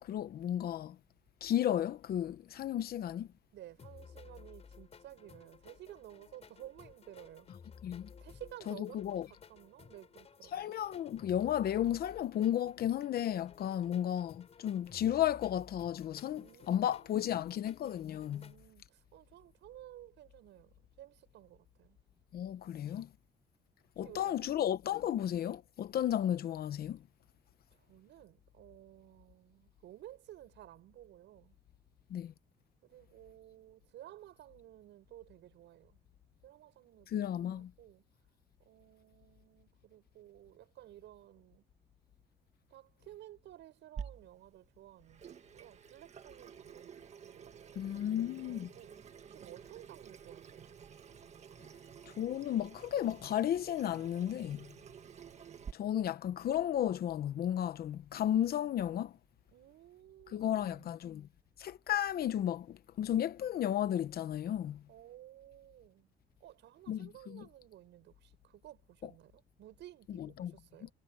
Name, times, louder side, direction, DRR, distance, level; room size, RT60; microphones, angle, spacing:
voice 1, 0.0-1.0 1.4-3.3 7.8-8.1 8.7-9.3 10.5-18.5 22.3-23.1 24.0-27.0 32.1-32.3 37.1-37.7 47.8-48.7 52.1-54.7 55.7-59.1 60.3-61.3 61.6-64.8 66.9-67.5 69.0-69.1 70.2-70.5 70.8-70.9, left 11 dB, 60° left, 0.9 m, -33 dB
voice 2, 3.5-7.5 8.2-10.8 16.3-17.7 18.2-22.0 24.0-24.5 27.7-31.6 32.8-36.0 36.4-38.0 38.6-41.6 42.7-49.0 49.3-50.7 59.5-61.0 64.9-66.1 66.4-70.9, right 14 dB, 90° right, 7.4 m, -55 dB
sound 1, 3.8-18.6, left 6 dB, 35° left, 4.7 m, -56 dB
Water tap faucet / Sink (filling or washing), 44.0-55.7, right 7 dB, 40° right, 1.7 m, -51 dB
cardioid pair, 150°, 18 cm